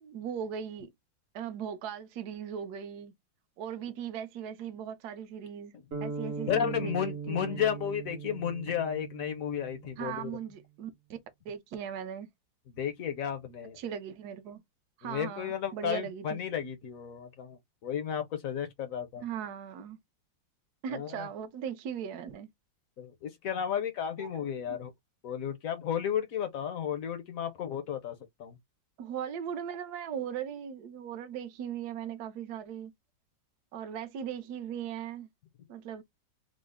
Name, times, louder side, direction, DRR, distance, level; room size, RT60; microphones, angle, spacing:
voice 1, 0.0-0.9 1.3-3.1 3.6-7.6 10.0-11.2 11.4-12.3 13.8-14.6 15.0-16.4 19.2-20.0 20.8-22.5 24.2-24.8 29.0-32.9 33.7-35.3 35.7-36.0, right 8 dB, 65° right, 1.1 m, -38 dB
sound 1, 5.9-10.2, right 5 dB, 45° right, 0.9 m, -40 dB
voice 2, 6.5-10.3 12.7-13.8 15.0-19.2 20.9-21.3 23.0-24.9 25.2-28.5, left 8 dB, 65° left, 0.9 m, -33 dB
3.8 x 2.0 x 3.5 m
omnidirectional pair, 2.0 m